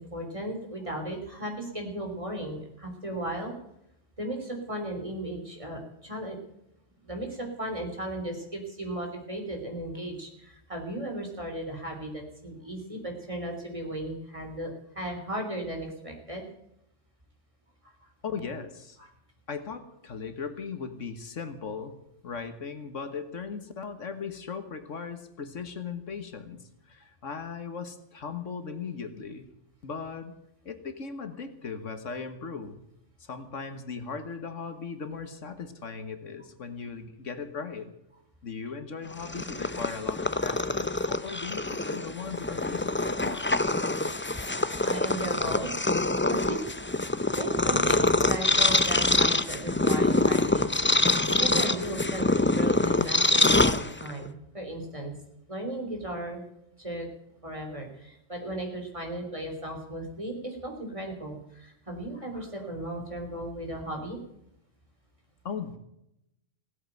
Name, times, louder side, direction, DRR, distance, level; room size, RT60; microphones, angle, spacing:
voice 1, 0.0-3.6 4.2-6.4 7.0-16.4 19.0-19.1 44.8-45.7 46.0-46.7 47.2-50.7 51.0-55.1 55.5-56.4 56.8-57.1 57.4-64.2, right 1 dB, 25° right, 2 dB, 3.8 m, -36 dB
voice 2, 18.2-19.0 19.5-22.0 22.2-29.5 29.8-30.3 30.7-32.8 33.2-37.9 38.4-43.5 65.4-65.8, left 5 dB, 75° left, 9 dB, 1.8 m, -38 dB
Purr, 39.1-54.3, left 2 dB, 20° left, 0.3 m, -25 dB
16.5 x 8.8 x 9.1 m, 0.81 s
omnidirectional pair, 1.3 m